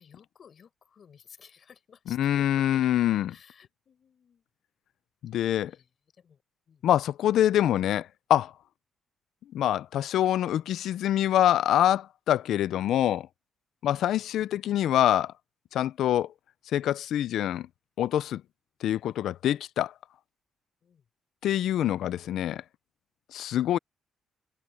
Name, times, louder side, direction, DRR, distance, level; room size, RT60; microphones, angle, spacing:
voice 1, 0.0-2.9 3.3-4.4 5.7-6.4 6.7-6.8 12.4-12.6 13.8-14.2 20.8-21.0, left 7 dB, 45° left, 6.7 m, -55 dB
voice 2, 2.1-3.3 5.2-5.7 6.8-8.5 9.5-13.3 13.8-15.3 15.7-16.3 16.7-17.7 18.0-18.4 18.8-19.9 21.4-22.6 23.3-23.8, left 11 dB, 80° left, 0.5 m, -25 dB
cardioid pair, 150°, 0 cm